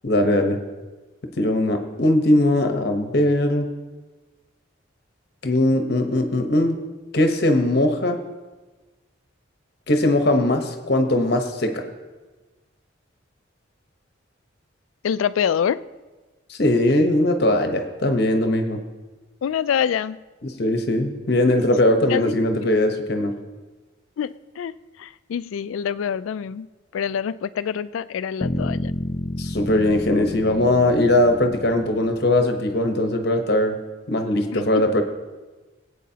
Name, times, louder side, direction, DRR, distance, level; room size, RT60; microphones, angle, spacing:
voice 1, 0.0-0.6 1.4-3.6 5.4-6.8 7.1-8.2 9.9-11.8 16.5-18.8 20.4-23.3 29.4-33.8 34.1-35.0, left 1 dB, 55° left, 5 dB, 1.0 m, -20 dB
voice 2, 15.0-15.8 19.4-20.2 22.1-22.7 24.2-24.7 25.0-26.7 26.9-28.9 34.5-34.9, left 8 dB, 90° left, 16 dB, 0.3 m, -26 dB
sound 1, 28.4-32.4, left 1 dB, 30° left, 0.5 m, -30 dB
18.0 x 8.4 x 2.8 m, 1.2 s
head